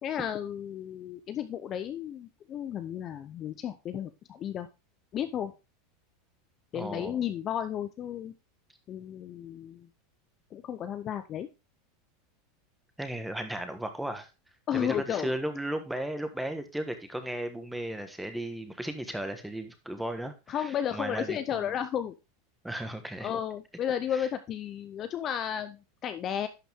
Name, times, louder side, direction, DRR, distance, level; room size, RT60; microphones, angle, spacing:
voice 1, 0.0-4.7 5.1-5.5 6.7-8.3 8.9-9.9 10.5-11.5 14.7-15.3 20.5-22.1 23.2-26.5, left 9 dB, 30° left, 10 dB, 0.6 m, -33 dB
voice 2, 6.7-7.2 13.0-14.3 14.7-21.7 22.6-23.3 24.1-24.3, right 1 dB, 5° right, 7 dB, 1.3 m, -35 dB
11.0 x 5.8 x 3.5 m, 0.27 s
supercardioid pair, 145°, 0 cm